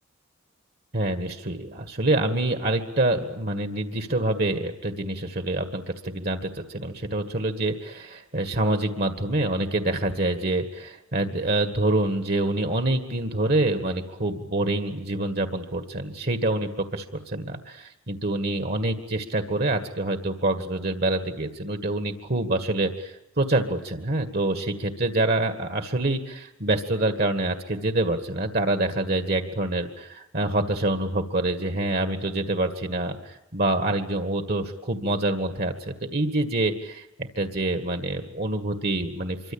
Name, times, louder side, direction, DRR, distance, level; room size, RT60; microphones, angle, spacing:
voice 1, 0.9-37.1 37.4-39.5, right 2 dB, 45° right, 7 dB, 1.8 m, -26 dB
26.5 x 24.0 x 8.8 m, 0.87 s
head